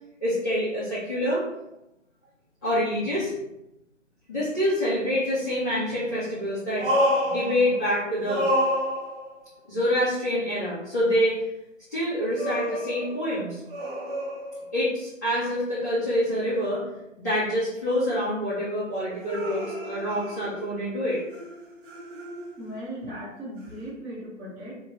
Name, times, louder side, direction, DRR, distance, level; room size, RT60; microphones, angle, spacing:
voice 1, 0.2-1.4 2.6-3.3 4.3-6.9 7.2-8.5 9.7-11.4 11.9-13.6 14.7-16.9 17.2-21.2, equal, 15° left, -14 dB, 0.5 m, -26 dB
sound 1, 5.2-5.3 6.7-8.0 8.2-9.4 12.4-14.9 19.2-20.9 21.3-22.7 23.8-23.9, equal, 45° right, 0.8 m, -29 dB
voice 2, 22.6-24.8, equal, 10° right, -9 dB, 0.9 m, -37 dB
2.8 x 2.2 x 3.5 m, 0.89 s
figure-of-eight pair, 140°, 38 cm